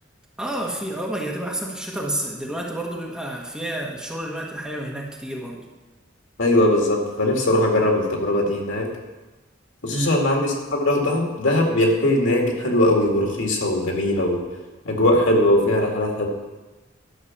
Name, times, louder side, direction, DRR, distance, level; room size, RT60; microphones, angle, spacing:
voice 1, 0.4-5.7 9.9-10.1, right 1 dB, 5° right, -2 dB, 1.4 m, -29 dB
voice 2, 6.4-8.9 9.8-14.4 14.8-16.3, left 1 dB, 75° left, 0 dB, 2.2 m, -20 dB
11.5 x 6.2 x 7.3 m, 1.2 s
head